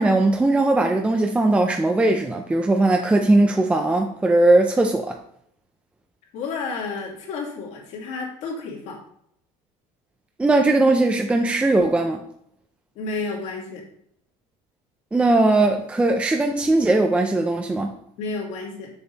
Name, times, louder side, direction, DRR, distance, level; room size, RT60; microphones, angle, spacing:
voice 1, 0.0-5.2 10.4-12.2 15.1-17.9, right 2 dB, 10° right, 4 dB, 0.5 m, -19 dB
voice 2, 6.3-9.0 12.9-13.8 18.2-18.9, left 4 dB, 60° left, -1 dB, 2.8 m, -31 dB
7.0 x 7.0 x 4.1 m, 0.70 s
cardioid pair, 155°, 13 cm